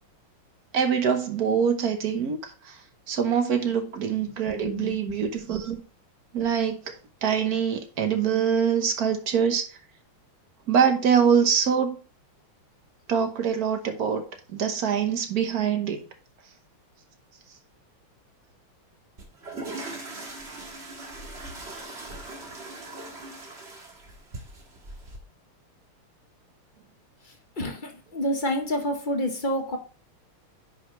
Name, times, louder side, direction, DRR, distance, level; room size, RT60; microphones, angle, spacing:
voice 1, 0.7-2.8 3.1-5.8 6.3-6.9 7.2-9.7 10.7-12.0 13.1-14.2 14.5-16.0, right 7 dB, 50° right, 1.4 m, -24 dB
voice 2, 4.2-5.2 27.3-29.8, equal, 40° left, 0.7 m, -29 dB
sound 1, 19.2-25.2, right 2 dB, 30° right, 1.7 m, -40 dB
9.9 x 5.5 x 3.2 m
omnidirectional pair, 2.4 m